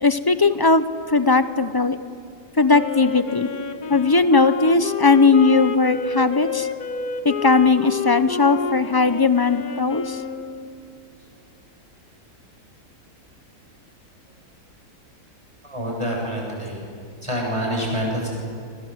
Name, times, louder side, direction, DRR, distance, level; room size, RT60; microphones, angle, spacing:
voice 1, 0.0-2.0 2.6-3.5 3.9-6.7 7.2-10.2, left 4 dB, 25° left, 12 dB, 0.5 m, -18 dB
Wind instrument woodwind instrument, 2.7-10.8, left 4 dB, 70° left, 1.9 m, -29 dB
voice 2, 15.6-16.8 17.2-18.3, equal, 20° right, -2 dB, 7.7 m, -26 dB
29.5 x 24.0 x 8.0 m, 2.4 s
omnidirectional pair, 1.7 m